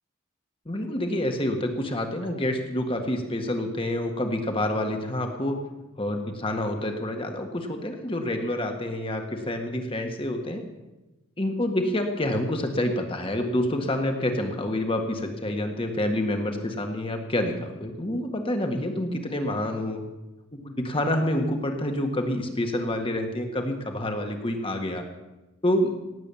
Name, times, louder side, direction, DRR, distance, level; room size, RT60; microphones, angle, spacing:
voice 1, 0.6-5.6 6.0-10.8 11.4-20.0 20.5-25.0 25.6-25.9, left 1 dB, 25° left, 4 dB, 1.7 m, -28 dB
17.5 x 8.3 x 7.0 m, 1.1 s
head